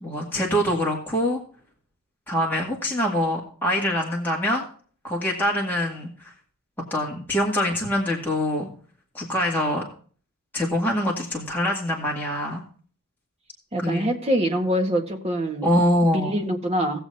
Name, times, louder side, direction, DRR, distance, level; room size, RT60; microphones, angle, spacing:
voice 1, 0.0-1.4 2.3-4.7 5.0-6.1 6.9-8.7 9.1-9.8 10.5-12.6 13.8-14.1 15.6-16.4, equal, 10° left, 2.0 m, -24 dB
voice 2, 13.7-15.7 16.1-17.0, equal, 30° right, 1.6 m, -24 dB
19.0 x 7.2 x 2.8 m
head